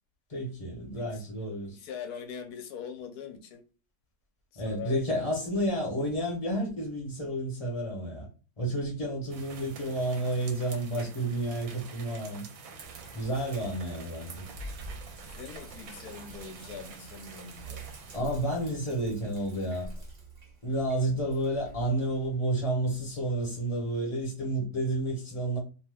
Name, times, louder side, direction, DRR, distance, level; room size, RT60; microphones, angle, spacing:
voice 1, 0.3-1.8 4.6-8.3 8.6-12.4 13.1-14.4 18.1-19.9 20.6-25.6, right 1 dB, 30° left, 0.8 m, -30 dB
voice 2, 1.7-3.6 4.5-5.7 15.2-17.8 21.1-21.2, left 7 dB, 75° left, 1.1 m, -42 dB
sound 1, 9.3-18.2, right 5 dB, 65° right, 1.0 m, -47 dB
Sink (filling or washing), 12.8-22.5, right 2 dB, 50° right, 0.4 m, -47 dB
2.7 x 2.2 x 3.3 m
omnidirectional pair, 1.7 m